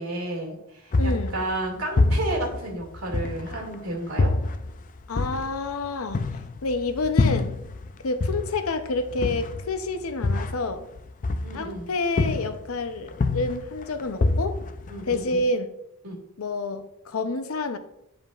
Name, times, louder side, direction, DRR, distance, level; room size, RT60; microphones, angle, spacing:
voice 1, 0.0-4.3 11.4-11.9 14.9-15.4 16.0-16.2, right 1 dB, 85° right, -1 dB, 2.3 m, -32 dB
sound 1, 0.9-3.7 4.2-7.9 8.2-11.9 12.2-12.8 13.1-15.4, left 3 dB, 40° left, 0.4 m, -26 dB
voice 2, 1.0-1.3 5.1-6.3 6.6-7.5 8.0-10.9 11.5-14.6 15.1-15.7 16.4-17.8, left 3 dB, 80° left, 9 dB, 0.7 m, -28 dB
9.4 x 5.2 x 2.4 m, 0.82 s
head